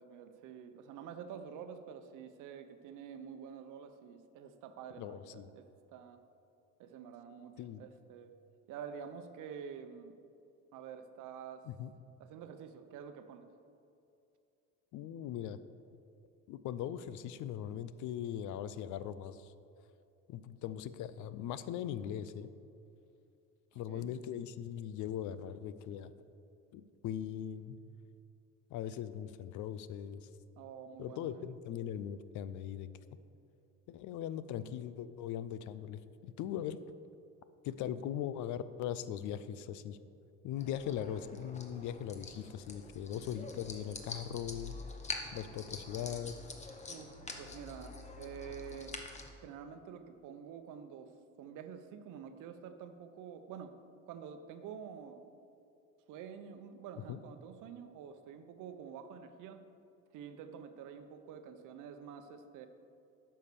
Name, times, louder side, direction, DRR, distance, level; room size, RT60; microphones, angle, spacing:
voice 1, 0.0-6.2 6.8-8.4 8.7-10.2 10.7-11.7 12.2-13.5 23.7-24.1 30.6-31.5 46.9-49.1 49.4-53.8 54.1-55.4 56.1-59.7 60.1-62.7, right 7 dB, 75° right, 9 dB, 0.8 m, -48 dB
voice 2, 5.0-5.5 7.6-7.8 11.7-11.9 14.9-15.6 16.5-19.5 20.3-22.5 23.7-26.1 26.7-27.8 28.7-30.3 31.0-32.9 33.9-36.8 37.6-40.0 40.4-44.8 45.3-46.4 57.1-57.2, left 10 dB, 70° left, 14 dB, 0.5 m, -40 dB
sound 1, 40.6-49.3, left 3 dB, 20° left, 1.0 m, -46 dB
9.4 x 5.7 x 6.8 m, 2.6 s
cardioid pair, 120°, 31 cm